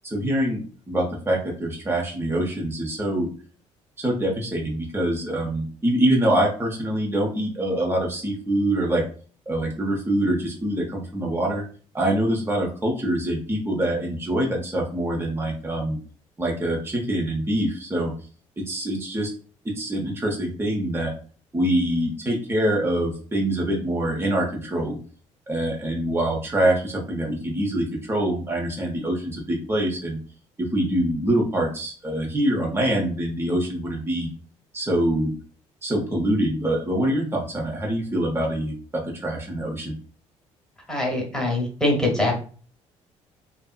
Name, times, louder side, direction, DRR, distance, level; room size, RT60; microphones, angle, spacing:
voice 1, 0.0-3.3 4.0-9.0 9.5-11.6 11.9-16.0 16.4-18.1 18.6-19.3 19.6-21.1 21.5-25.0 25.5-30.2 30.6-34.3 34.7-35.3 35.8-38.7 39.0-40.0, right 1 dB, 15° right, -1 dB, 0.8 m, -24 dB
voice 2, 40.9-42.3, left 1 dB, 5° left, -1 dB, 1.1 m, -23 dB
2.6 x 2.5 x 2.4 m, 0.41 s
figure-of-eight pair, 50°, 16 cm